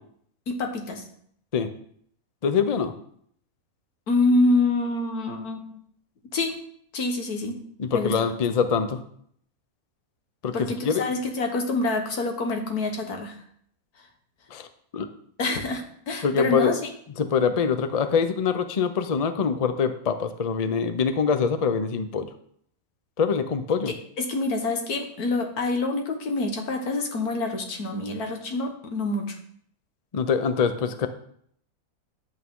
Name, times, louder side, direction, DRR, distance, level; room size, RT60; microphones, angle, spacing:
voice 1, 0.5-1.0 4.1-5.8 6.3-6.5 6.9-7.6 7.9-8.3 10.5-13.4 15.4-16.9 23.9-29.4, left 2 dB, 85° left, 4 dB, 1.9 m, -26 dB
voice 2, 2.4-2.9 7.8-9.0 10.4-10.5 10.8-11.0 14.5-14.7 14.9-15.1 16.2-16.7 17.2-22.3 23.2-23.9 30.1-31.1, left 6 dB, 40° left, 9 dB, 0.6 m, -24 dB
9.7 x 8.4 x 3.8 m, 0.65 s
omnidirectional pair, 1.6 m